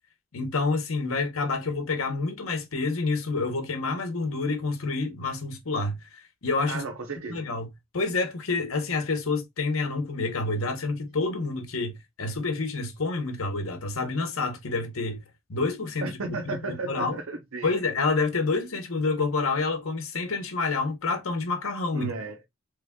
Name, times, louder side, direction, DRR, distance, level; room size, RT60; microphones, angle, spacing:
voice 1, 0.3-6.8 7.3-7.7 7.9-11.9 12.2-15.2 15.5-17.2 17.6-22.1, left 3 dB, 85° left, 0.9 m, -28 dB
voice 2, 6.7-7.5 16.0-17.7 21.9-22.5, right 3 dB, 85° right, 0.7 m, -34 dB
3.3 x 2.3 x 3.5 m
head